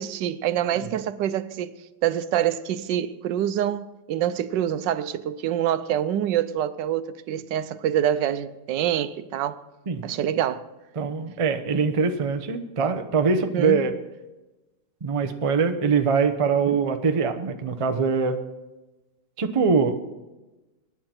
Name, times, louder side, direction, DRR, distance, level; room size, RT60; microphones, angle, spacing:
voice 1, 0.0-1.8 2.0-9.6 10.0-10.6 13.5-13.8 16.7-16.8, right 10 dB, 85° right, 1.3 m, -26 dB
voice 2, 11.0-13.9 15.0-18.4 19.4-20.0, right 5 dB, 35° right, 0.5 m, -23 dB
23.0 x 9.6 x 4.4 m
omnidirectional pair, 1.9 m